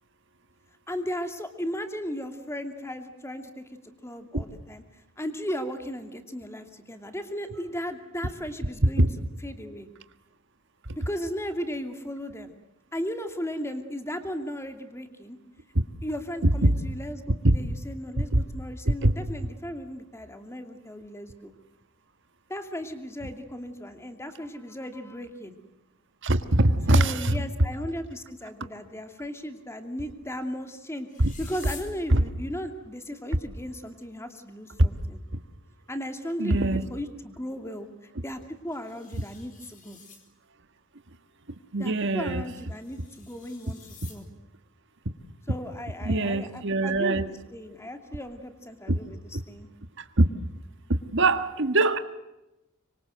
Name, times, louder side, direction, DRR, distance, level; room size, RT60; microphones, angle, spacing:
voice 1, 0.9-3.7 4.0-4.8 5.2-9.9 11.0-12.5 12.9-15.4 16.0-21.5 22.5-25.6 26.9-31.1 31.4-35.2 35.9-37.9 38.2-40.0 41.8-44.2 45.5-49.2 49.5-49.7, equal, 15° left, 2.6 m, -36 dB
voice 2, 26.2-27.4 31.2-31.3 32.1-32.2 36.4-36.9 41.7-42.4 46.0-47.3 48.9-49.0 50.0-50.3 50.9-52.0, right 2 dB, 60° right, 1.6 m, -22 dB
sound 1, 31.1-32.0 34.0-34.1 34.3-34.4 35.0-35.1 38.4-40.3 42.4-44.2 46.6-46.9, left 6 dB, 40° left, 4.5 m, -49 dB
25.5 x 24.5 x 7.9 m
head